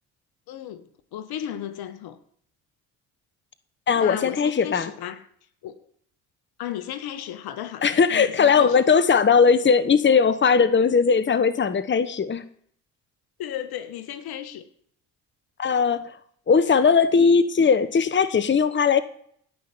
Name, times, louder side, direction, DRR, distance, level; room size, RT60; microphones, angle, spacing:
voice 1, 0.5-2.2 3.9-5.3 5.6-5.8 6.6-8.8 13.4-14.7, left 11 dB, 65° left, 1.6 m, -35 dB
voice 2, 3.9-4.9 7.8-12.4 15.6-16.0 16.5-19.0, left 5 dB, 30° left, 1.1 m, -19 dB
17.5 x 5.9 x 9.8 m
hypercardioid pair, 60°, 40 cm